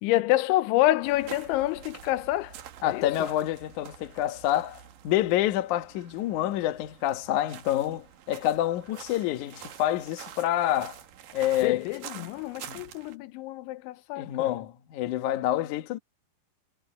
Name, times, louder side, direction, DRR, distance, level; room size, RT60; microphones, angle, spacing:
voice 1, 0.0-2.6 2.8-3.3 11.6-14.6, left 16 dB, 90° left, 3.2 m, -27 dB
sound 1, 1.0-13.2, right 10 dB, 65° right, 2.5 m, -47 dB
voice 2, 2.8-11.0 11.3-11.9 12.7-12.8 14.2-16.0, left 13 dB, 70° left, 1.9 m, -27 dB
omnidirectional pair, 5.3 m